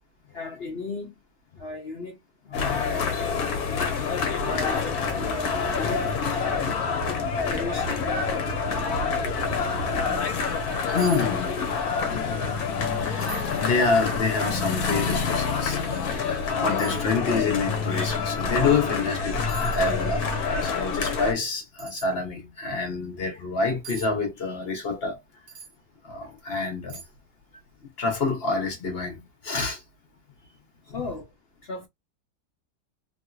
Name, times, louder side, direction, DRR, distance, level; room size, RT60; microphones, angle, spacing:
voice 1, 0.3-1.1 1.6-2.2 2.5-3.7 4.4-6.1 7.4-8.0 30.9-31.3 31.7-31.9, left 3 dB, 75° left, 0.5 m, -36 dB
sound 1, 2.5-21.3, left 5 dB, 60° left, 1.2 m, -27 dB
voice 2, 2.5-2.9 10.8-11.5 13.0-20.3 20.6-25.2 26.0-27.0 28.0-29.8 30.9-31.0, left 4 dB, 40° left, 1.0 m, -27 dB
sound 2, 4.1-10.2, right 4 dB, 75° right, 1.2 m, -38 dB
sound 3, 11.0-11.3 11.5-12.1 12.5-12.6 13.2-13.6 14.3-14.4 15.9-16.0 16.8-17.1 18.9-19.1 19.5-20.0 21.8-22.1 23.8-24.1 25.5-25.8 26.3-26.4 26.9-27.3 27.6-27.7, right 6 dB, 55° right, 1.4 m, -42 dB
3.1 x 2.8 x 2.3 m
omnidirectional pair, 1.9 m